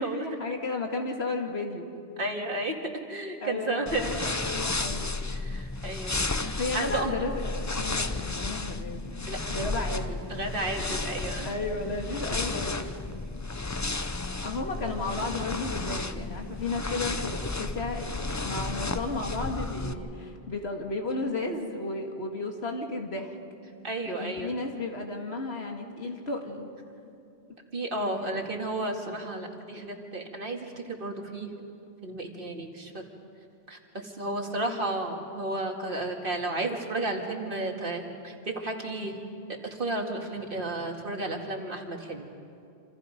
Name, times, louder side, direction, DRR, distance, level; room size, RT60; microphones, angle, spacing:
voice 1, 0.0-1.9 3.4-5.1 6.6-9.1 9.5-10.2 11.4-12.9 14.4-23.4 24.1-26.7 28.2-28.4 34.5-34.7, left 3 dB, 75° left, 2 dB, 2.4 m, -33 dB
voice 2, 2.2-2.8 3.1-4.1 5.3-6.2 6.7-7.1 9.3-9.4 10.3-11.5 23.8-24.5 27.7-31.5 32.0-33.1 33.7-39.2 39.7-42.3, right 2 dB, 55° right, 2 dB, 2.4 m, -32 dB
sound 1, 3.9-19.9, left 3 dB, 20° left, 0.6 m, -33 dB
27.5 x 27.5 x 5.3 m, 2.6 s
omnidirectional pair, 1.1 m